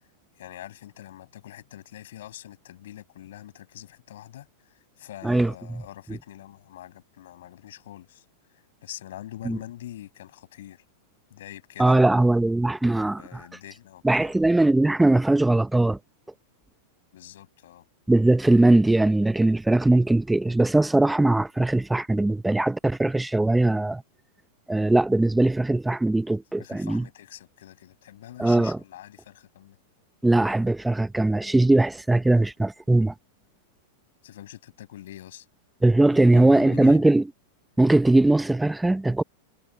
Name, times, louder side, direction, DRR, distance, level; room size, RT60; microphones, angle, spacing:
voice 1, 0.3-8.2 8.8-10.8 11.3-12.2 13.1-14.3 17.1-17.8 26.6-29.8 34.2-35.5 36.1-37.1, left 13 dB, 75° left, 6.7 m, -44 dB
voice 2, 5.2-5.8 9.4-9.6 11.8-13.2 14.0-16.0 18.1-24.0 24.7-27.1 28.4-28.8 30.2-33.1 35.8-37.2 37.8-39.2, right 2 dB, 5° right, 0.8 m, -20 dB
hypercardioid pair, 125°, 0 cm